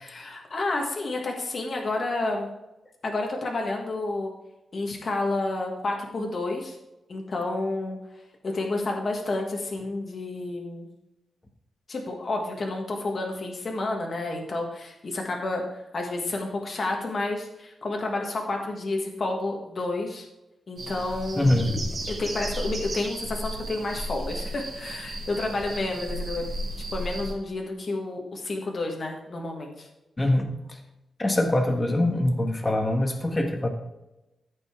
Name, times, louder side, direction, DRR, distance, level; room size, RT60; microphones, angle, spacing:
voice 1, 0.0-2.5 3.0-4.3 4.7-6.8 7.1-8.0 8.4-10.9 11.9-20.3 20.7-21.8 22.1-26.5 26.9-29.9, left 2 dB, 40° left, 1 dB, 1.5 m, -30 dB
sound 1, 20.8-27.3, right 1 dB, 35° right, 3.1 m, -34 dB
voice 2, 21.3-21.9 30.2-30.8 31.2-33.7, left 1 dB, 15° left, 3 dB, 1.3 m, -24 dB
14.0 x 5.3 x 3.7 m, 0.95 s
wide cardioid pair, 165°, 0 cm